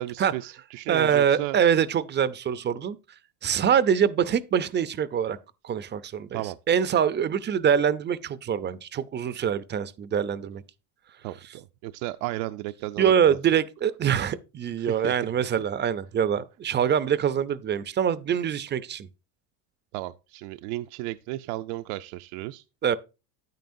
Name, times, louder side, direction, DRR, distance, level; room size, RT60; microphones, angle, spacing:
voice 1, 0.0-1.6 6.3-6.6 11.2-13.4 14.8-15.3 19.9-22.6, right 17 dB, 75° right, 0.6 m, -34 dB
voice 2, 0.9-3.0 3.4-5.4 5.6-6.4 6.7-10.6 13.0-19.1 22.8-23.0, right 8 dB, 25° right, 0.4 m, -24 dB
9.3 x 9.2 x 2.6 m
cardioid pair, 125°, 46 cm